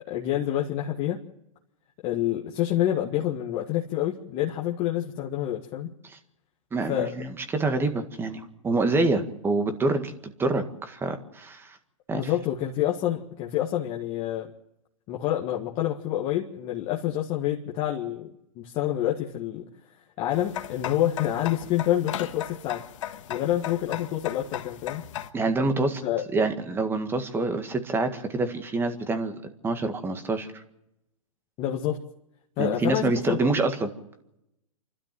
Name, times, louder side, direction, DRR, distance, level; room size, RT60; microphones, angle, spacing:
voice 1, 0.1-1.2 2.0-5.9 6.9-7.1 12.1-14.5 15.1-18.3 18.6-19.7 20.2-22.8 23.3-25.0 26.0-26.3 31.6-32.0 32.6-33.6, left 12 dB, 35° left, -1 dB, 1.7 m, -27 dB
voice 2, 6.7-11.8 12.1-12.2 25.3-26.0 26.3-29.4 29.6-30.6 32.6-33.9, right 3 dB, 10° right, 7 dB, 1.8 m, -26 dB
sound 1, 20.3-25.3, left 11 dB, 60° left, 1.5 m, -36 dB
28.0 x 12.5 x 7.7 m, 0.86 s
hypercardioid pair, 135°, 18 cm